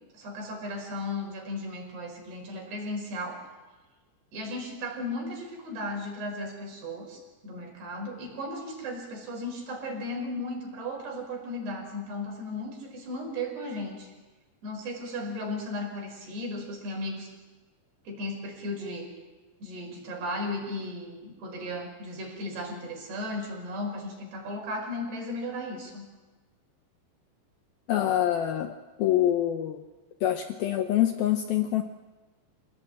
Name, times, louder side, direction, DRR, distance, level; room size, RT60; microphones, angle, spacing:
voice 1, 0.1-3.4 4.3-14.1 14.6-17.3 18.1-19.1 19.6-26.0, left 1 dB, 55° right, 1 dB, 7.3 m, -35 dB
voice 2, 27.9-29.8 30.2-31.8, left 12 dB, 85° left, 7 dB, 2.1 m, -25 dB
27.5 x 18.0 x 8.9 m, 1.2 s
omnidirectional pair, 5.6 m